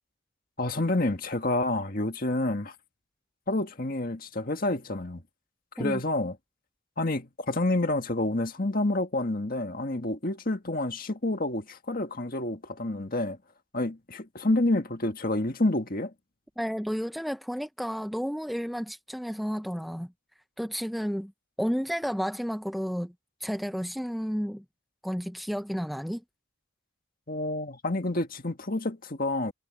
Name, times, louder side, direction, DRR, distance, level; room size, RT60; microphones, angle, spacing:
voice 1, 0.6-2.7 3.5-5.2 5.8-6.4 7.0-13.4 13.7-16.1 27.3-29.5, left 2 dB, 40° left, 1.8 m, -28 dB
voice 2, 16.6-20.1 20.6-21.3 21.6-23.1 23.4-24.6 25.0-26.2, equal, ahead, 0.6 m, -31 dB
head